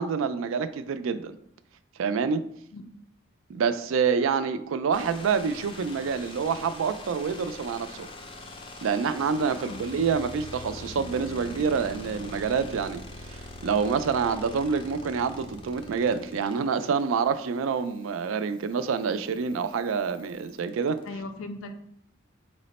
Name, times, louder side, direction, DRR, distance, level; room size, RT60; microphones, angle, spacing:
voice 1, 0.0-1.4 2.0-2.4 3.5-8.1 8.8-13.0 13.3-21.0, right 6 dB, 85° right, 0.3 m, -27 dB
sound 1, 4.9-21.1, left 2 dB, 25° left, 0.4 m, -43 dB
voice 2, 9.5-9.9 21.0-21.7, left 2 dB, 80° left, 0.5 m, -38 dB
4.7 x 2.1 x 4.0 m
head